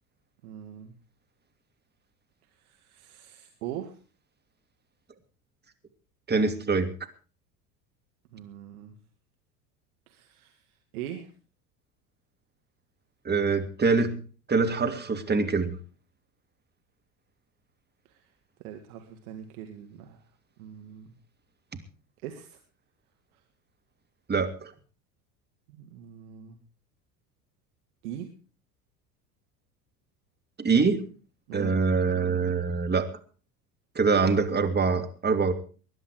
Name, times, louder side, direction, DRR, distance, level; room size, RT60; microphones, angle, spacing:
voice 1, 0.4-0.9 2.6-3.9 8.3-9.0 10.1-10.6 10.9-11.3 18.1-18.3 18.6-20.2 20.6-21.1 22.2-22.6 25.7-26.6 28.0-28.3 31.5-31.8, right 10 dB, 65° right, 5 dB, 2.2 m, -41 dB
voice 2, 6.3-6.9 13.2-14.2 14.5-15.8 24.3-24.7 30.6-31.0 31.5-33.1 33.9-35.5, right 4 dB, 20° right, 7 dB, 2.7 m, -24 dB
20.5 x 11.0 x 4.9 m, 0.38 s
hypercardioid pair, 75°, 47 cm